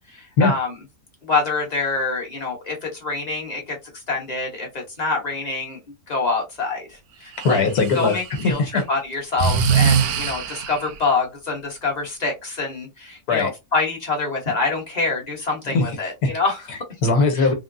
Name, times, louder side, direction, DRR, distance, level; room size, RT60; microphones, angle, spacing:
voice 1, 0.1-0.7 1.2-3.8 4.1-5.8 6.1-7.6 7.9-16.6 17.4-17.5, left 3 dB, 30° left, 1.0 m, -26 dB
voice 2, 7.4-8.8 13.3-13.5 15.7-16.3 16.7-17.5, left 3 dB, 90° left, 1.5 m, -20 dB
Breathing, 7.4-8.5 9.4-11.0, right 7 dB, 80° right, 1.1 m, -22 dB
3.6 x 2.1 x 2.6 m
omnidirectional pair, 1.6 m